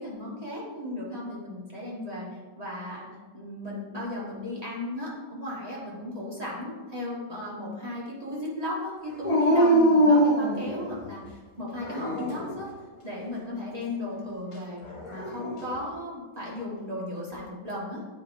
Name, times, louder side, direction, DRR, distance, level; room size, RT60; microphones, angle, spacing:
voice 1, 0.0-2.3 2.5-3.1 3.3-12.7 13.0-14.8 15.1-18.0, left 1 dB, 25° right, -6 dB, 1.5 m, -35 dB
Dog, 9.2-11.1 11.8-12.6 14.8-15.7, equal, 45° left, 0.4 m, -23 dB
8.4 x 5.1 x 2.7 m, 1.3 s
omnidirectional pair, 1.9 m